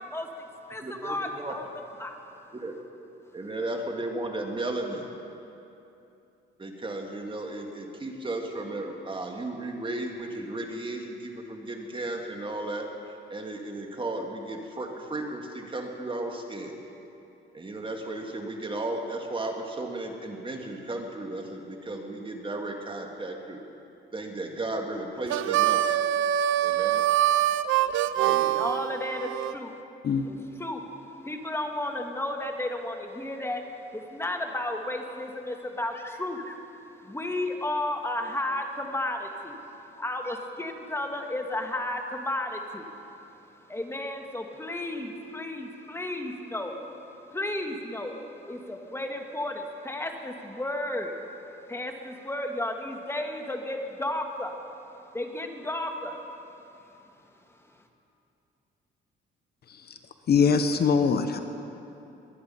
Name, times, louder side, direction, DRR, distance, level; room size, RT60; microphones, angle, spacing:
voice 1, 0.0-1.7 1.9-2.5 3.3-3.4 27.9-29.8 30.2-57.9, left 1 dB, 10° left, 3 dB, 1.6 m, -34 dB
voice 2, 0.8-1.5 2.5-2.7 3.3-5.1 6.6-12.9 13.3-16.8 17.5-23.6 24.1-26.0 26.6-27.0 28.2-28.6, right 2 dB, 25° right, 3 dB, 1.8 m, -34 dB
Harmonica, 25.3-29.5, right 12 dB, 85° right, 0.4 m, -24 dB
voice 3, 60.3-61.4, left 5 dB, 55° left, 8 dB, 0.9 m, -23 dB
22.5 x 9.6 x 5.5 m, 2.8 s
cardioid pair, 90°, 20 cm